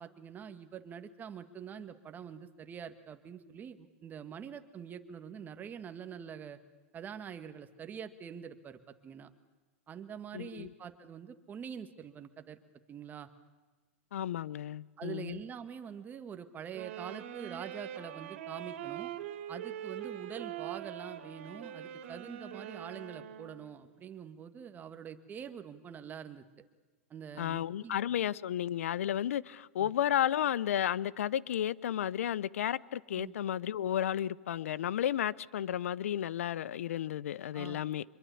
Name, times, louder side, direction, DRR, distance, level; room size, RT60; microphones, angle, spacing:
voice 1, 0.0-6.6 6.9-9.3 9.9-12.6 12.9-13.3 15.0-19.1 19.5-26.4 27.1-28.0 29.8-29.9 33.2-33.3 37.5-37.8, right 8 dB, 25° right, 1.9 m, -45 dB
voice 2, 10.3-10.7 14.1-15.4 27.4-38.0, left 11 dB, 75° left, 0.7 m, -33 dB
sound 1, 16.7-23.8, right 10 dB, 60° right, 3.1 m, -43 dB
25.5 x 22.5 x 8.5 m
hypercardioid pair, 115°, 7 cm